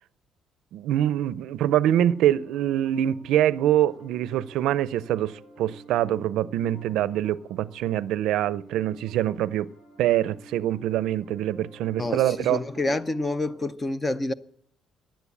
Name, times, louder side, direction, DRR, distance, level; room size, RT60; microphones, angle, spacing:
voice 1, 0.7-9.7 10.0-12.6, right 12 dB, 80° right, 0.5 m, -24 dB
Piano, 1.3-13.7, right 1 dB, 50° left, 6.0 m, -51 dB
voice 2, 12.0-14.3, left 2 dB, 15° left, 0.6 m, -28 dB
15.5 x 10.5 x 8.4 m
cardioid pair, 160°, 0 cm